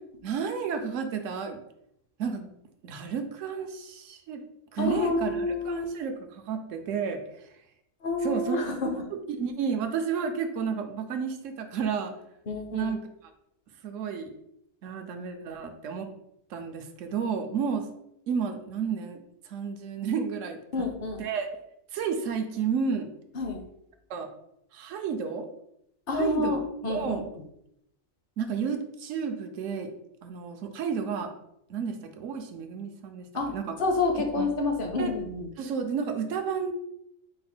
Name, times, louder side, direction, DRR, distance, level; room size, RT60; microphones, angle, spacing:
voice 1, 0.2-1.6 2.2-2.5 2.8-4.4 4.7-7.6 8.2-12.1 12.7-13.0 13.8-14.3 14.8-16.1 16.5-17.9 18.3-20.8 21.2-21.5 21.9-23.1 24.1-24.3 24.7-25.5 26.1-27.2 28.4-29.9 30.2-31.3 31.7-33.8 34.4-34.5 35.0-35.1 35.6-36.7, right 6 dB, 70° right, 6 dB, 0.9 m, -32 dB
voice 2, 4.8-5.8 8.0-9.0 12.5-12.9 20.7-21.2 23.3-23.6 26.1-27.2 33.3-33.5 33.8-35.5, left 3 dB, 50° left, 3 dB, 0.7 m, -28 dB
4.8 x 2.1 x 4.3 m, 0.78 s
omnidirectional pair, 1.5 m